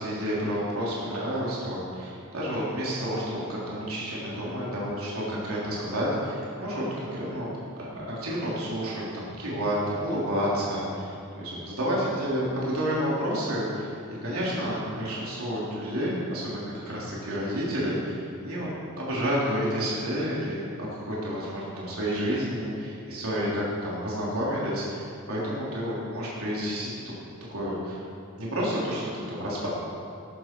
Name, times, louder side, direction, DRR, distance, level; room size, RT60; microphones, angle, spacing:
voice 1, 0.0-7.5 7.8-18.7 19.0-26.9 27.5-28.0 28.4-29.7, equal, 80° right, -6 dB, 3.5 m, -30 dB
14.0 x 12.0 x 4.6 m, 2.5 s
head